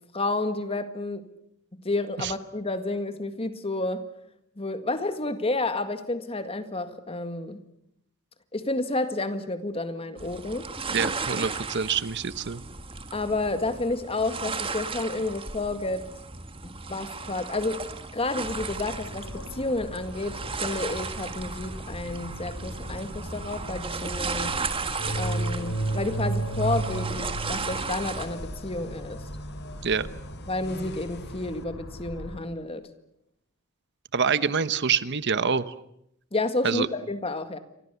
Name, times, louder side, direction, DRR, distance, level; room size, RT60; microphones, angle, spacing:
voice 1, 0.1-1.3 1.7-4.0 4.6-7.6 8.5-10.7 13.1-16.1 16.6-17.8 18.1-24.6 25.2-29.2 30.5-32.9 36.3-37.6, left 2 dB, 25° left, 10 dB, 1.9 m, -30 dB
sound 1, 10.2-28.3, right 4 dB, 25° right, 1.8 m, -35 dB
voice 2, 10.9-12.6 29.8-30.1 34.1-35.7 36.6-36.9, right 6 dB, 55° right, 15 dB, 1.0 m, -26 dB
sound 2, 18.4-32.4, right 2 dB, 75° left, 4.5 m, -35 dB
sound 3, 26.6-31.6, left 3 dB, 50° left, 2.2 m, -49 dB
29.0 x 25.0 x 6.9 m, 0.75 s
head